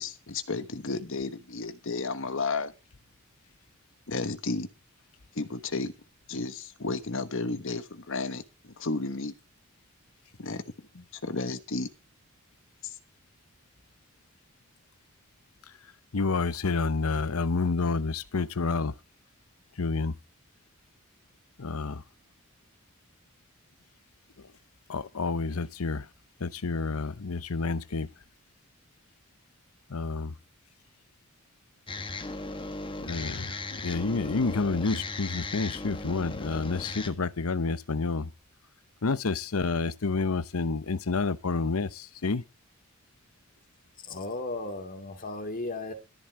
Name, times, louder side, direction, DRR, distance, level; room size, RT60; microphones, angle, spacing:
voice 1, 0.0-2.7 4.1-4.7 5.4-5.9 6.3-8.4 8.8-9.3 10.4-10.6 10.9-11.9, left 3 dB, 65° left, 1.3 m, -32 dB
voice 2, 16.1-18.9 19.8-20.1 21.6-22.0 24.9-26.0 26.4-28.1 29.9-30.3 33.1-33.4 33.8-38.3 39.0-42.4, left 4 dB, 90° left, 0.8 m, -29 dB
sound 1, 31.9-37.1, left 2 dB, 25° left, 1.4 m, -37 dB
voice 3, 44.0-45.9, left 2 dB, 40° left, 2.5 m, -35 dB
13.5 x 11.0 x 4.7 m
head